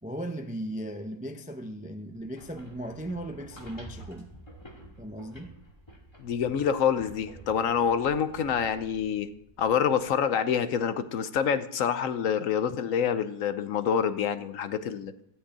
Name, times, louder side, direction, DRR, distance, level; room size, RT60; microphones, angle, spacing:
voice 1, 0.0-4.3 5.0-5.5, right 1 dB, 10° right, 0.4 m, -37 dB
sound 1, 2.1-10.1, right 1 dB, 15° left, 2.0 m, -49 dB
voice 2, 6.2-9.3 9.6-15.1, left 7 dB, 65° left, 1.0 m, -27 dB
13.5 x 5.4 x 8.5 m
omnidirectional pair, 1.7 m